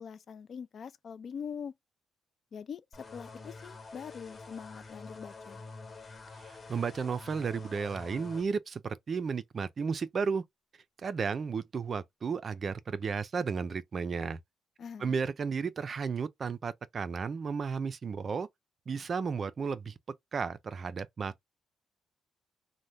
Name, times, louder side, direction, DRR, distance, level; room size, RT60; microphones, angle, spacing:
voice 1, 0.0-1.7 2.5-2.8 3.1-5.6 14.8-15.2, left 7 dB, 55° left, 0.3 m, -43 dB
sound 1, 2.9-8.5, left 3 dB, 35° left, 0.9 m, -47 dB
voice 2, 6.3-10.4 11.0-14.4 15.0-18.5 18.9-19.9 20.3-21.4, right 5 dB, 45° right, 0.3 m, -33 dB
2.7 x 2.1 x 3.3 m
cardioid pair, 90°, 0 cm